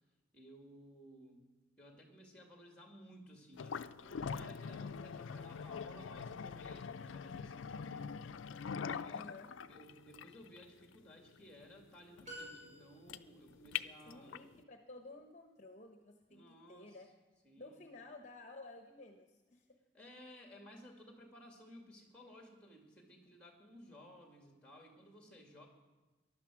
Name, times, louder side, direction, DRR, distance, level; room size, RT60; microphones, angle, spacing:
voice 1, 0.3-1.5 1.8-8.1 9.0-9.3 9.6-14.4 16.3-17.0 17.4-17.8 19.9-25.7, equal, 5° left, 2 dB, 2.1 m, -57 dB
sound 1, 3.5-14.6, left 6 dB, 85° left, 0.4 m, -44 dB
voice 2, 9.1-9.5 14.1-17.1 17.6-19.8, left 2 dB, 40° left, 4 dB, 0.9 m, -53 dB
sound 2, 12.2-13.4, equal, 35° right, 5.4 m, -50 dB
14.5 x 11.0 x 6.1 m, 1.2 s
head